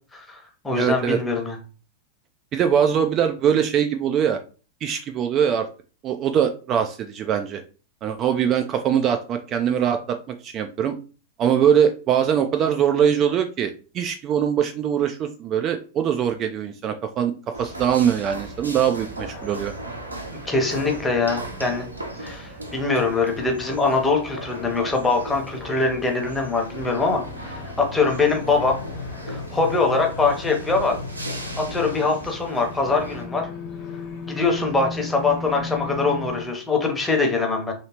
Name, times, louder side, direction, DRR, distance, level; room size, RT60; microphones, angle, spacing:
voice 1, 0.1-1.6 20.4-21.8 22.2-28.8 29.3-31.0 31.6-33.5 34.3-37.7, left 3 dB, 10° left, 2 dB, 0.9 m, -23 dB
voice 2, 0.7-1.2 2.5-4.4 4.8-5.7 6.0-7.6 8.0-10.9 11.4-17.3 17.6-19.7, right 8 dB, 30° right, 6 dB, 0.3 m, -22 dB
sound 1, 17.5-36.5, left 4 dB, 35° left, 1.2 m, -40 dB
sound 2, 17.5-33.3, right 1 dB, 80° right, 0.6 m, -38 dB
sound 3, 26.7-32.1, left 3 dB, 75° left, 0.8 m, -36 dB
3.1 x 2.8 x 2.9 m, 0.36 s
figure-of-eight pair, 90°, 0 cm